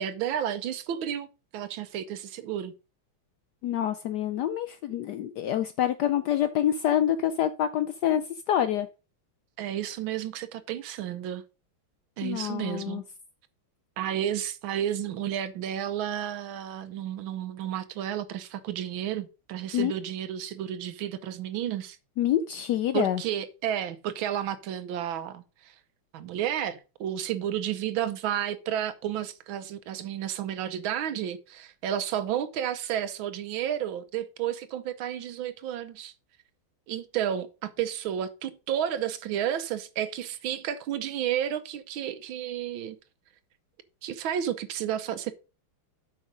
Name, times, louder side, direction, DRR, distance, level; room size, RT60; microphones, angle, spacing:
voice 1, 0.0-2.7 9.6-11.4 12.2-13.0 14.0-22.0 22.9-25.7 26.1-36.1 36.9-43.0 44.0-45.3, right 10 dB, 75° right, 1.5 m, -32 dB
voice 2, 3.6-8.9 12.2-13.0 19.7-19.9 22.2-23.2, left 11 dB, 75° left, 0.9 m, -27 dB
8.0 x 5.5 x 5.0 m
omnidirectional pair, 2.3 m